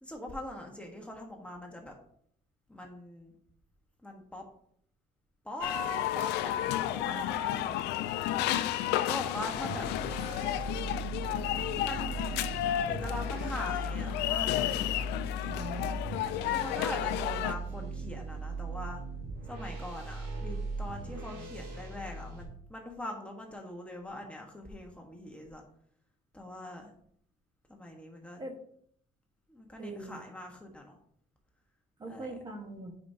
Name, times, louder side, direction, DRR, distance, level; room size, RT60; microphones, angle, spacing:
voice 1, 0.0-1.9 2.7-3.3 4.0-4.4 5.4-7.8 9.0-9.9 11.7-12.4 12.9-14.9 16.5-19.0 19.5-25.6 26.3-26.9 27.7-28.4 29.5-31.0 32.1-32.3, left 1 dB, 5° left, 1 dB, 1.3 m, -42 dB
sound 1, 5.6-17.5, left 13 dB, 85° left, 0.4 m, -32 dB
sound 2, 9.6-22.4, right 2 dB, 75° right, 2.4 m, -39 dB
voice 2, 15.4-16.0 28.4-28.6 29.8-30.2 32.0-32.9, right 2 dB, 25° right, 2 dB, 1.4 m, -41 dB
9.2 x 5.2 x 2.8 m, 0.65 s
cardioid pair, 110°, 17 cm